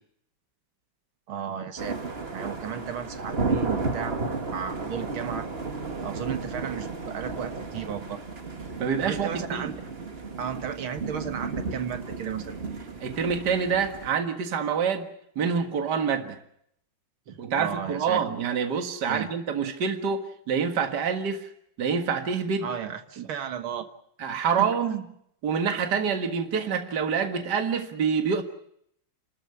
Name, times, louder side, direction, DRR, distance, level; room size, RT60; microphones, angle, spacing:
voice 1, 1.3-2.0 2.3-4.2 4.5-5.5 6.0-8.2 9.0-9.7 10.4-12.6 17.3-18.2 19.1-19.3 22.6-23.9 24.6-24.7, right 8 dB, 80° right, 2.4 m, -34 dB
sound 1, 1.8-14.1, right 3 dB, 30° right, 1.9 m, -33 dB
voice 2, 8.8-9.7 13.0-16.4 17.4-21.5 21.8-22.7 23.2-23.3 24.2-25.0 25.4-28.4, right 6 dB, 55° right, 2.2 m, -27 dB
28.5 x 13.5 x 9.7 m
omnidirectional pair, 2.3 m